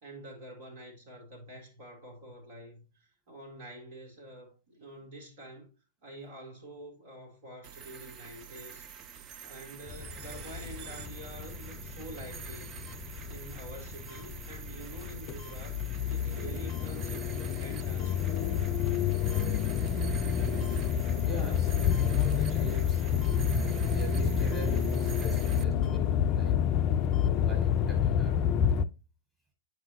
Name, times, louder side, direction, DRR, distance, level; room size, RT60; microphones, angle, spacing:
voice 1, 0.0-5.7 6.0-8.8 9.4-18.5, right 1 dB, 55° right, 2.8 m, -47 dB
sound 1, 7.6-25.6, right 8 dB, 35° right, 0.6 m, -46 dB
sound 2, 9.9-28.9, left 8 dB, 40° left, 0.4 m, -29 dB
sound 3, 12.9-13.0 14.1-14.2 15.4-15.5 16.7-16.9 18.0-18.1 19.3-19.5 20.6-20.8 21.9-22.1 23.2-23.4 24.5-24.7 25.8-26.0 27.1-27.3, left 11 dB, 25° left, 0.8 m, -53 dB
voice 2, 21.2-23.1 23.9-26.6 27.2-28.5, equal, 15° right, 4.4 m, -42 dB
9.0 x 4.9 x 2.7 m
hypercardioid pair, 105°, 0 cm